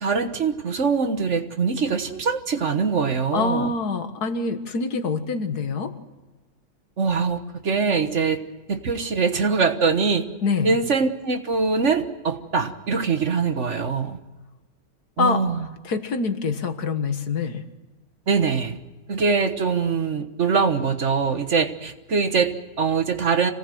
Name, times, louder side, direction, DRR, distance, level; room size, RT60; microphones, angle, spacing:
voice 1, 0.0-3.7 7.0-8.4 8.7-10.3 10.6-14.2 15.2-15.7 18.3-18.8 19.1-23.5, right 5 dB, 50° right, 8 dB, 1.5 m, -23 dB
voice 2, 3.3-5.9 10.4-10.8 15.2-15.4 15.8-17.6, left 4 dB, 80° left, 8 dB, 2.0 m, -25 dB
26.0 x 18.0 x 7.8 m, 1.2 s
omnidirectional pair, 1.7 m